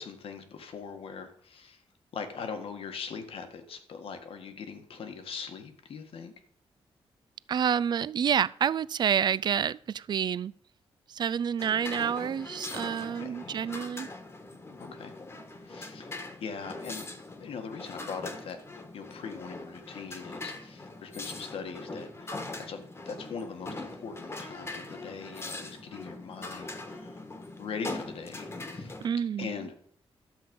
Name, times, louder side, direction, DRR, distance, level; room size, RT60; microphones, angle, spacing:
voice 1, 0.0-1.8 2.1-6.3 13.2-13.7 14.8-15.1 15.6-16.1 16.4-17.0 17.4-27.2 27.6-28.9 29.4-29.7, left 5 dB, 70° left, 1.6 m, -41 dB
voice 2, 7.5-10.5 11.1-14.1 29.0-29.5, right 8 dB, 45° right, 0.4 m, -28 dB
sound 1, 11.6-29.1, left 2 dB, 25° left, 1.4 m, -41 dB
12.5 x 7.7 x 5.3 m
wide cardioid pair, 130°, 10 cm